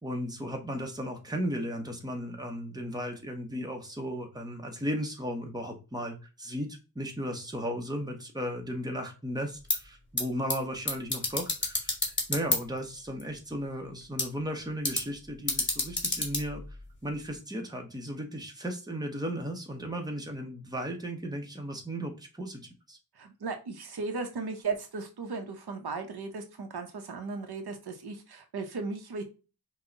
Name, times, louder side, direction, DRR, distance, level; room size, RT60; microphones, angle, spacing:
voice 1, 0.0-6.7 6.9-16.6 17.0-23.0, equal, 10° right, 3 dB, 1.0 m, -35 dB
sound 1, 9.5-17.4, left 2 dB, 30° left, 1.4 m, -33 dB
voice 2, 23.2-29.2, right 4 dB, 85° right, 5 dB, 0.9 m, -36 dB
5.5 x 2.3 x 3.9 m, 0.32 s
wide cardioid pair, 105°, 38 cm